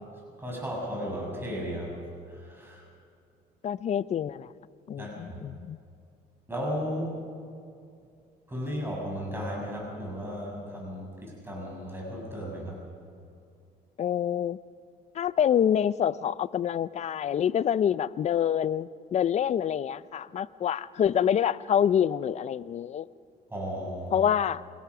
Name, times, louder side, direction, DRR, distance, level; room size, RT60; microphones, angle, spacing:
voice 1, 0.4-2.0 2.3-2.8 5.0-5.4 6.5-7.2 8.5-12.8 23.5-24.3, equal, 15° right, -2 dB, 6.9 m, -35 dB
voice 2, 3.6-4.5 4.9-5.8 14.0-14.6 15.1-23.1 24.1-24.6, left 9 dB, 40° left, 17 dB, 0.5 m, -26 dB
26.0 x 17.0 x 6.1 m, 2.4 s
cardioid pair, 110°, 17 cm